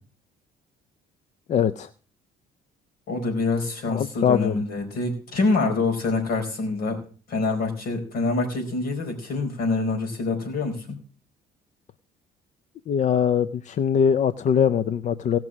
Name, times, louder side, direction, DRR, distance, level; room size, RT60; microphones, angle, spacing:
voice 1, 1.5-1.9 3.9-4.6 12.9-15.4, left 8 dB, 45° left, 14 dB, 0.5 m, -22 dB
voice 2, 3.1-7.0 7.3-10.9, left 3 dB, 65° left, 3 dB, 4.4 m, -26 dB
18.0 x 6.1 x 6.2 m, 0.42 s
cardioid pair, 110°, 17 cm